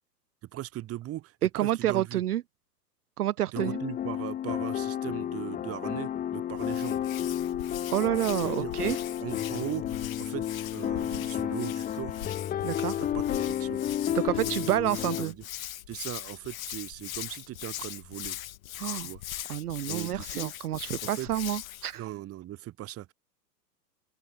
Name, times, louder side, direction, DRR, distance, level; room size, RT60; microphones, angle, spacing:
voice 1, 0.5-2.2 3.5-7.0 8.4-10.4 10.7-12.2 13.0-13.8 14.1-14.2 14.6-14.8 15.2-15.5 15.9-18.4 18.9-19.2 19.9-20.5 21.1-21.3 21.9-23.1, right 14 dB, 25° right, 6.0 m, -39 dB
voice 2, 1.4-2.4 3.2-3.8 7.9-9.0 12.6-13.0 14.1-15.3 18.8-19.1 19.5-22.1, right 12 dB, 65° right, 0.8 m, -29 dB
sound 1, 3.6-15.3, left 10 dB, 15° left, 1.5 m, -32 dB
Hands, 6.5-21.9, left 14 dB, 55° left, 1.4 m, -41 dB
open air
figure-of-eight pair, 110°, 50 cm